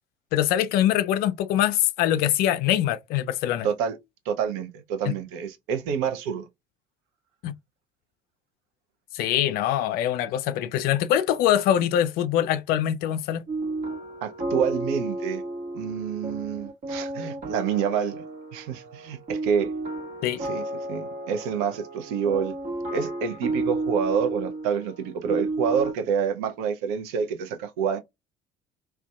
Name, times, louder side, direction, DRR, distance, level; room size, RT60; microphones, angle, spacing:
voice 1, 0.3-3.7 7.4-7.5 9.1-13.4 20.2-20.4, left 11 dB, 50° left, 0.4 m, -23 dB
voice 2, 3.6-4.0 4.3-6.5 14.2-15.4 15.7-18.2 18.5-19.7 20.4-22.5 22.9-28.0, right 7 dB, 60° right, 0.6 m, -28 dB
sound 1, 13.5-25.9, right 2 dB, 40° right, 0.8 m, -32 dB
2.5 x 2.2 x 2.2 m
figure-of-eight pair, 55°, 20 cm